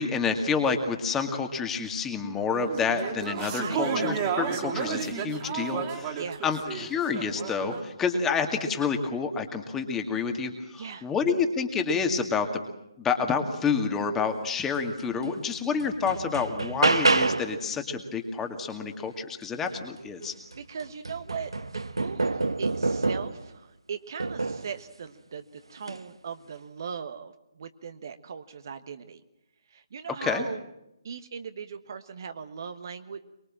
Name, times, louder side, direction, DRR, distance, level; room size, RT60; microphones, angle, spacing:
voice 1, 0.0-12.5 13.0-20.3 30.2-30.4, left 5 dB, 10° left, 5 dB, 2.1 m, -28 dB
sound 1, 2.5-7.8, right 6 dB, 25° right, 2.8 m, -32 dB
voice 2, 3.4-4.1 6.2-6.4 10.7-11.1 20.5-29.2 29.7-30.6 31.0-33.2, right 6 dB, 45° right, 10 dB, 1.4 m, -39 dB
sound 2, 15.2-15.3 15.8-17.6 20.0-20.1 20.5-23.5 24.2-24.7 25.8-26.0, right 3 dB, 75° right, 1.2 m, -27 dB
23.5 x 22.5 x 7.6 m, 0.87 s
figure-of-eight pair, 140°, 3 cm